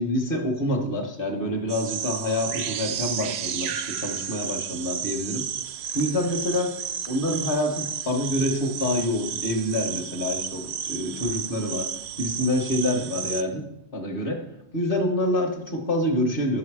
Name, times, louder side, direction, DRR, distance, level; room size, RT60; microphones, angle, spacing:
voice 1, 0.0-5.4 5.9-6.7 7.1-11.9 12.2-14.4 14.7-16.6, left 1 dB, 50° left, 3 dB, 1.4 m, -26 dB
sound 1, 1.7-13.4, right 8 dB, 70° right, 0.8 m, -32 dB
9.3 x 6.4 x 4.8 m, 0.83 s
omnidirectional pair, 1.2 m